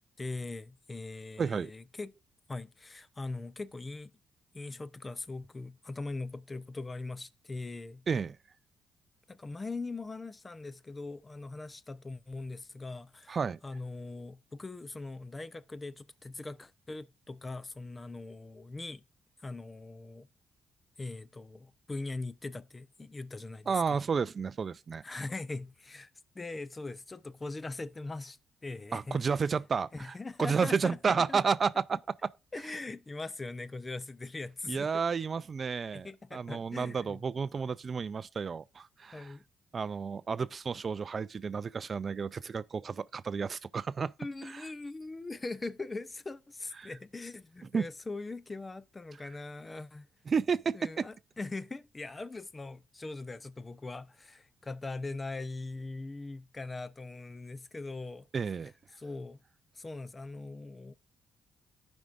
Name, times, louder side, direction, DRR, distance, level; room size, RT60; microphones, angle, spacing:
voice 1, 0.0-2.1 2.5-4.1 4.5-8.0 9.3-13.4 13.6-19.0 19.4-20.3 21.0-24.0 25.0-29.2 29.9-31.4 32.5-35.0 35.9-37.2 39.1-39.4 44.2-50.1 50.7-58.3 59.0-59.4 59.7-60.9, left 3 dB, 25° left, 0.5 m, -41 dB
voice 2, 1.4-1.7 8.1-8.4 13.3-13.6 23.7-25.0 28.9-32.3 34.7-39.3 39.7-44.1 44.4-44.7 46.8-46.9 47.7-47.9 50.3-51.1 58.3-58.7, right 5 dB, 40° right, 0.3 m, -31 dB
14.5 x 5.2 x 2.4 m
cardioid pair, 90°, 0 cm